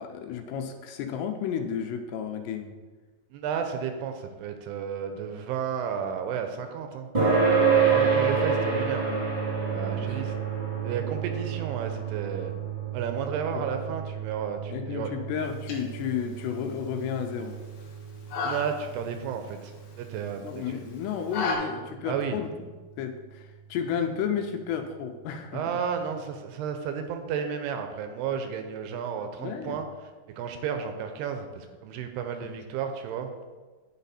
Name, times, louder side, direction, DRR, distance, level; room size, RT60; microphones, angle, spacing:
voice 1, 0.0-2.7 7.8-8.2 9.1-9.2 10.0-10.2 13.5-13.6 14.7-17.6 20.4-25.6 29.4-29.8, left 7 dB, 85° left, 6 dB, 2.8 m, -32 dB
voice 2, 3.3-7.1 7.9-9.1 9.7-10.4 10.8-12.5 12.9-15.2 18.4-19.7 20.0-20.8 22.0-22.4 25.5-29.9 30.3-33.3, right 7 dB, 80° right, 6 dB, 2.6 m, -32 dB
sound 1, 7.1-22.1, right 5 dB, 20° right, 1.6 m, -29 dB
sound 2, 15.4-21.6, left 4 dB, 65° left, 2.8 m, -37 dB
11.5 x 4.1 x 4.2 m, 1.3 s
omnidirectional pair, 4.9 m